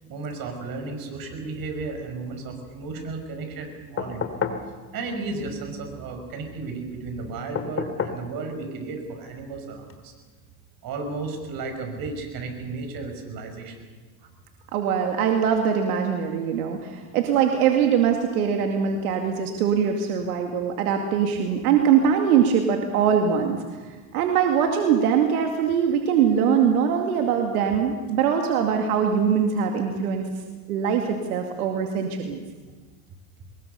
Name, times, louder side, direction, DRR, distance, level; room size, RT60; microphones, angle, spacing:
voice 1, 0.1-4.3 4.9-10.1 10.8-13.7, right 3 dB, 50° right, 5 dB, 6.2 m, -34 dB
sound 1, 4.0-4.7 7.5-8.3 9.9-10.0, left 6 dB, 30° left, 2.6 m, -29 dB
voice 2, 14.7-23.6 24.1-30.3 30.7-32.4, right 7 dB, 85° right, 3 dB, 2.4 m, -22 dB
23.0 x 21.0 x 6.9 m, 1.4 s
supercardioid pair, 100°, 43 cm